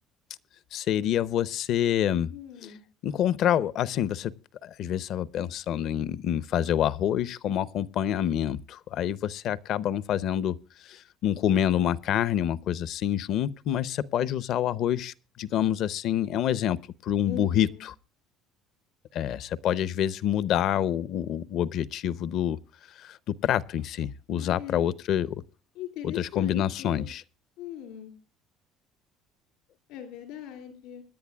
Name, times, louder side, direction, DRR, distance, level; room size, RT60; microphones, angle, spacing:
voice 1, 0.7-2.4 2.6-2.7 3.0-4.3 4.6-10.6 10.8-17.9 19.1-22.6 23.0-23.2 23.4-25.4 26.0-27.2, left 10 dB, 60° left, 0.6 m, -27 dB
voice 2, 2.3-2.8 17.3-17.7 24.3-24.9 25.8-27.1 27.6-28.1 29.9-31.0, left 10 dB, 80° left, 3.0 m, -40 dB
26.0 x 10.5 x 2.3 m
cardioid pair, 120°, 0 cm